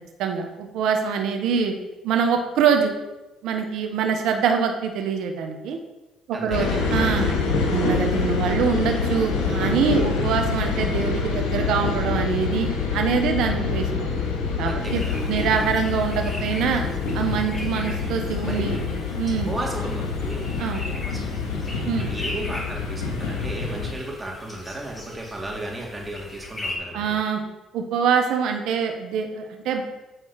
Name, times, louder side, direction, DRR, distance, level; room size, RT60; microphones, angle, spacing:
voice 1, 0.2-1.7 2.0-2.9 3.4-5.8 6.3-7.3 7.7-14.1 14.6-16.8 17.1-18.8 19.2-19.5 20.6-20.8 21.9-22.1 26.9-27.4 27.7-29.9, right 6 dB, 75° right, 4 dB, 1.1 m, -24 dB
voice 2, 6.3-7.0 14.6-15.4 18.4-18.8 19.4-20.5 20.9-21.6 22.1-27.2, right 1 dB, 20° right, -2 dB, 2.7 m, -34 dB
sound 1, 6.5-23.9, left 4 dB, 85° left, 1.9 m, -26 dB
sound 2, 14.9-26.8, left 1 dB, 20° left, 2.6 m, -39 dB
8.5 x 4.5 x 5.8 m, 1.0 s
supercardioid pair, 70°, 0 cm